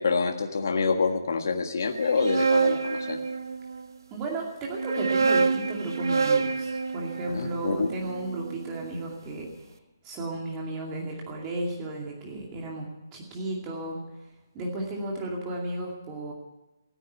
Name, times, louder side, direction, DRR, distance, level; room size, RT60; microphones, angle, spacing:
voice 1, 0.0-3.2 7.3-7.9, left 4 dB, 55° left, 4 dB, 1.6 m, -26 dB
sound 1, 2.0-3.9 4.6-8.8, right 4 dB, 75° right, 1.1 m, -27 dB
voice 2, 4.1-9.5 10.0-14.0 14.5-16.3, right 2 dB, 15° right, -1 dB, 2.4 m, -34 dB
15.5 x 9.2 x 9.2 m, 1.0 s
hypercardioid pair, 175°, 2 cm